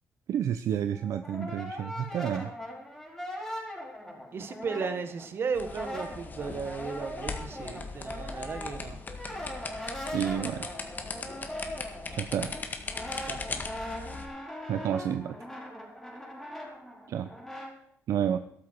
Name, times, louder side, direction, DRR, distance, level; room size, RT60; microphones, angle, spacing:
voice 1, 0.3-2.5 10.1-10.7 12.1-12.5 14.7-15.4 17.1-17.3 18.1-18.4, right 9 dB, 65° right, 9 dB, 0.7 m, -30 dB
Brass instrument, 0.9-5.3 5.6-17.7, left 1 dB, 5° left, 4.6 m, -40 dB
voice 2, 4.3-9.0 13.2-13.7, right 5 dB, 45° right, 9 dB, 1.6 m, -35 dB
sound 1, 5.5-14.3, left 4 dB, 35° left, 1.7 m, -39 dB
13.5 x 12.5 x 4.7 m, 0.68 s
cardioid pair, 120°, 6 cm